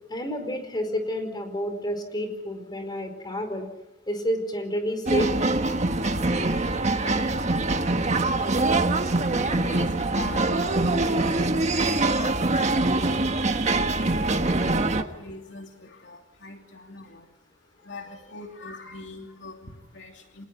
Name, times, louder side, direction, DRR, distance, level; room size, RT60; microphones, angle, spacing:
voice 1, 0.1-3.7 4.1-5.3, equal, 25° left, 7 dB, 4.9 m, -29 dB
sound 1, 5.1-15.0, right 2 dB, 40° right, 1.5 m, -24 dB
voice 2, 6.5-20.5, left 3 dB, 70° left, 3 dB, 2.9 m, -44 dB
27.5 x 20.0 x 9.9 m, 0.98 s
head